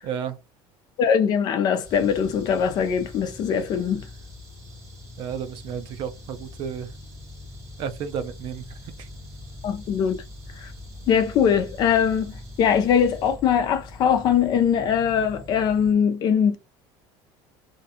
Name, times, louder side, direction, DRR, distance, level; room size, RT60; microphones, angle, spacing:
voice 1, 0.0-0.4 5.2-6.9 7.8-9.1, right 7 dB, 45° right, 0.4 m, -32 dB
voice 2, 1.0-4.0 9.6-10.2 10.6-10.7 11.1-16.6, left 7 dB, 35° left, 0.4 m, -21 dB
sound 1, 1.8-15.9, left 1 dB, 25° right, 1.3 m, -42 dB
2.6 x 2.2 x 2.7 m
cardioid pair, 175°, 11 cm